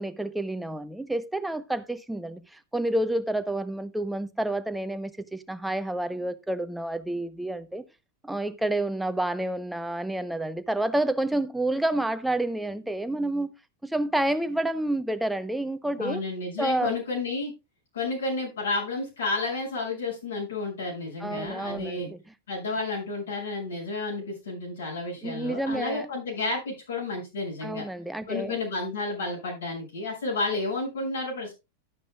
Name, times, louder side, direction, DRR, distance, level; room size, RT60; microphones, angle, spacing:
voice 1, 0.0-7.8 8.2-13.5 13.8-16.2 16.6-17.0 21.2-22.2 25.2-26.1 27.6-28.6, right 1 dB, 5° right, 0.9 m, -29 dB
voice 2, 16.0-17.5 17.9-22.1 22.5-27.9 28.3-31.5, left 3 dB, 65° left, 6.2 m, -31 dB
13.0 x 9.9 x 2.4 m
figure-of-eight pair, 90°, 0 cm